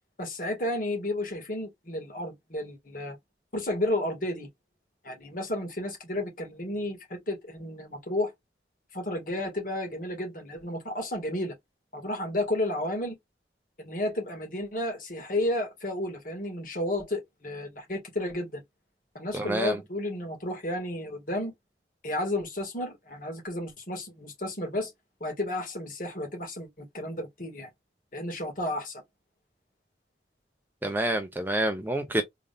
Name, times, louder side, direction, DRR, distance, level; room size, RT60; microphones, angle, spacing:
voice 1, 0.2-3.2 3.5-4.5 5.0-8.3 8.9-11.5 11.9-13.2 13.8-18.6 19.1-21.5 22.0-24.9 25.2-27.7 28.1-29.0, left 1 dB, 50° left, 1.9 m, -32 dB
voice 2, 19.3-19.8 30.8-32.2, right 1 dB, 10° right, 0.5 m, -28 dB
3.8 x 3.5 x 2.5 m
head